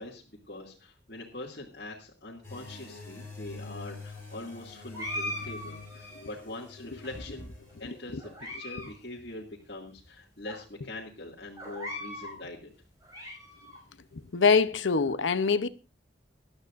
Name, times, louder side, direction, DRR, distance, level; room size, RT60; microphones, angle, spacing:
voice 1, 0.0-7.5 7.8-12.7, left 2 dB, 55° left, 2.4 m, -43 dB
sound 1, 2.4-8.4, left 3 dB, 15° left, 7.5 m, -46 dB
sound 2, 4.9-6.4 7.0-7.7 8.2-8.9 9.2-9.3 10.0-10.1 10.4-10.6 11.6-12.4 12.8-13.8, left 1 dB, 20° right, 6.1 m, -39 dB
voice 2, 14.1-15.7, left 5 dB, 80° left, 0.8 m, -24 dB
19.5 x 12.0 x 2.6 m
head